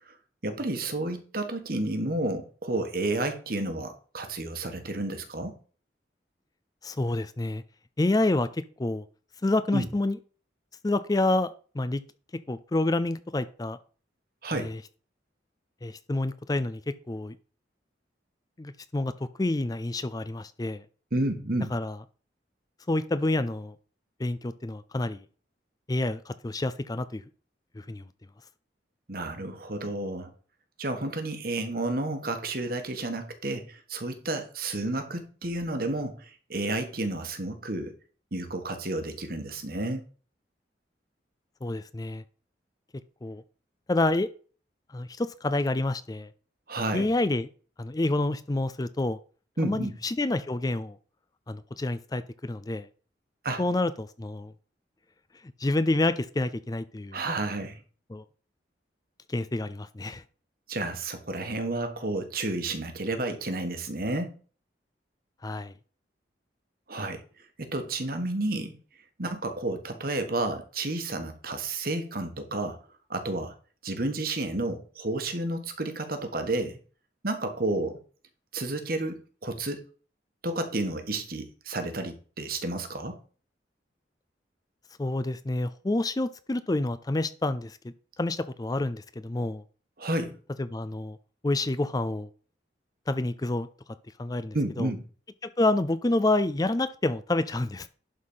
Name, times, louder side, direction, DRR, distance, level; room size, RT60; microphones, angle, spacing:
voice 1, 0.4-5.6 9.7-9.9 14.4-14.7 21.1-21.8 29.1-30.3 30.8-37.9 38.3-40.0 46.7-47.1 49.6-50.0 53.4-53.6 57.1-57.8 60.7-64.3 66.9-67.2 67.6-68.8 69.2-72.8 73.1-73.5 73.8-76.8 77.2-78.0 78.5-79.8 80.4-83.2 90.0-90.4 94.5-95.0, right 2 dB, 55° right, 7 dB, 1.4 m, -31 dB
voice 2, 6.8-7.6 8.0-9.0 9.4-10.2 10.8-12.0 12.5-13.8 14.5-14.8 15.8-17.4 18.6-19.1 19.4-20.8 21.7-22.0 22.9-23.7 24.2-25.2 25.9-27.2 27.8-28.0 41.6-42.2 43.2-43.4 43.9-44.3 44.9-46.3 46.9-47.5 47.8-49.2 49.6-51.0 51.5-52.9 53.6-54.5 55.6-57.2 58.1-58.2 59.3-60.2 65.4-65.7 85.0-87.8 88.2-89.6 90.6-91.2 91.4-92.3 93.1-93.7 94.2-94.9 95.4-97.9, left 2 dB, 20° left, 13 dB, 0.4 m, -28 dB
11.5 x 4.2 x 5.6 m, 0.40 s
head